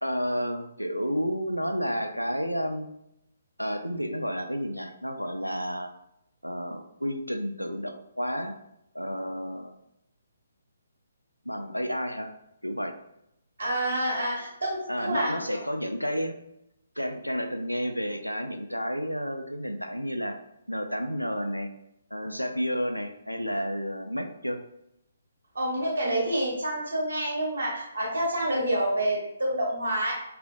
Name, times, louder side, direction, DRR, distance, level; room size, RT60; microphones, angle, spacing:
voice 1, 0.0-2.9 3.6-5.9 6.4-8.6 8.9-9.7 11.5-12.3 12.6-12.9 14.9-16.4 17.0-20.4 20.7-21.7 22.1-24.6, equal, 90° left, 6 dB, 0.3 m, -31 dB
voice 2, 13.6-15.6 25.5-30.1, right 1 dB, 65° right, -3 dB, 1.1 m, -28 dB
2.8 x 2.4 x 2.3 m, 0.81 s
figure-of-eight pair, 135°, 0 cm